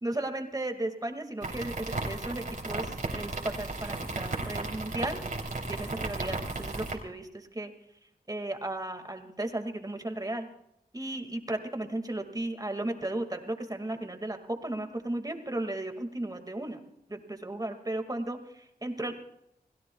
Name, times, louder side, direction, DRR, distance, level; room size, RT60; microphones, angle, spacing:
voice 1, 0.0-5.2 5.7-7.7 8.3-10.5 10.9-16.8 17.1-19.1, right 1 dB, 25° right, 5 dB, 2.0 m, -35 dB
sound 1, 1.4-6.9, right 2 dB, 55° right, 3.2 m, -35 dB
29.0 x 16.5 x 2.3 m, 0.81 s
wide cardioid pair, 80°, 16 cm